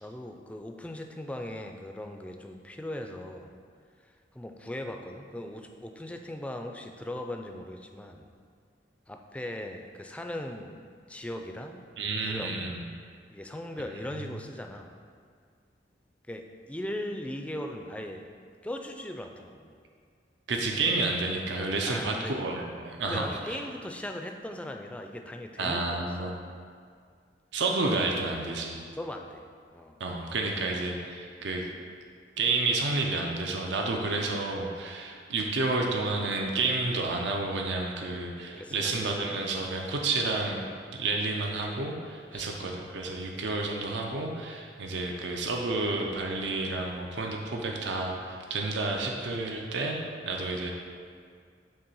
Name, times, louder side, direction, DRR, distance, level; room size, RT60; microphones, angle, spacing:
voice 1, 0.0-3.5 4.0-8.3 9.1-11.8 12.3-12.5 13.3-14.9 16.3-18.2 18.6-19.7 21.9-22.4 23.1-26.4 28.9-29.4 29.7-30.0 38.5-38.9 42.3-42.6, left 1 dB, 5° left, 4 dB, 0.3 m, -39 dB
voice 2, 12.0-12.8 20.5-23.6 25.6-26.4 27.5-28.8 30.0-31.7 32.4-40.7 40.9-50.0 50.2-50.7, right 3 dB, 80° right, 1 dB, 0.6 m, -30 dB
7.0 x 3.2 x 5.4 m, 2.1 s
head